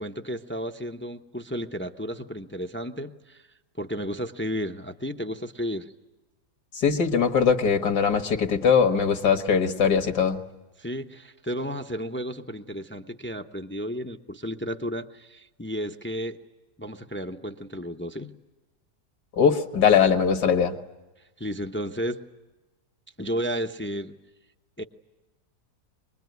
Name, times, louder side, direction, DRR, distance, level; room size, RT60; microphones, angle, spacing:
voice 1, 0.0-3.4 3.8-5.9 10.8-16.4 16.8-18.3 21.4-22.2 23.2-24.1 24.8-24.9, equal, 15° left, 6 dB, 0.3 m, -33 dB
voice 2, 6.7-10.4 19.4-20.7, left 6 dB, 80° left, 7 dB, 2.1 m, -21 dB
25.0 x 21.0 x 9.3 m, 1.1 s
omnidirectional pair, 1.7 m